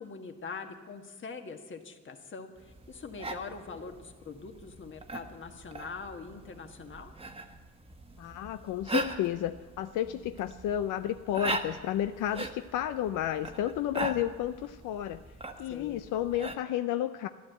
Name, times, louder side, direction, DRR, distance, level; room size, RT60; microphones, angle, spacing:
voice 1, 0.0-7.1 15.7-16.0, left 4 dB, 40° left, 5 dB, 1.6 m, -43 dB
sound 1, 2.6-16.6, right 2 dB, 20° right, 1.2 m, -40 dB
voice 2, 8.2-15.2 15.6-17.3, left 11 dB, 85° left, 9 dB, 0.5 m, -32 dB
13.0 x 11.0 x 7.9 m, 1.3 s
cardioid pair, 90°, 30 cm